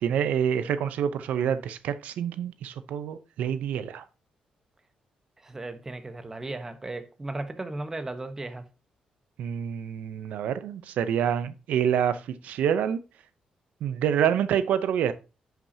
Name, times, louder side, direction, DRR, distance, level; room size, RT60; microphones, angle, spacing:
voice 1, 0.0-4.0 9.4-13.0 13.8-15.1, right 9 dB, 90° right, 0.6 m, -27 dB
voice 2, 5.4-8.7, right 2 dB, 20° right, 1.0 m, -36 dB
10.5 x 5.8 x 2.8 m
cardioid pair, 120°, 2 cm